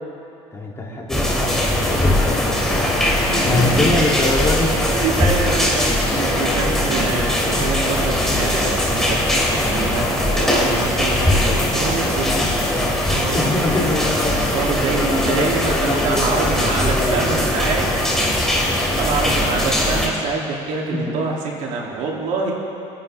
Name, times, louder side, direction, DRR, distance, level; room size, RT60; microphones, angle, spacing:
voice 1, 0.5-5.0 13.3-14.4 14.9-17.4 20.9-21.1, left 2 dB, 20° left, -3 dB, 2.4 m, -25 dB
sound 1, 1.1-20.1, left 1 dB, 5° left, 2.5 m, -20 dB
voice 2, 3.3-3.6 4.9-9.2 9.7-12.5 13.1-13.9 14.5-17.9 18.5-22.5, right 4 dB, 70° right, -2 dB, 2.4 m, -26 dB
23.5 x 10.0 x 3.3 m, 2.7 s
cardioid pair, 120°, 13 cm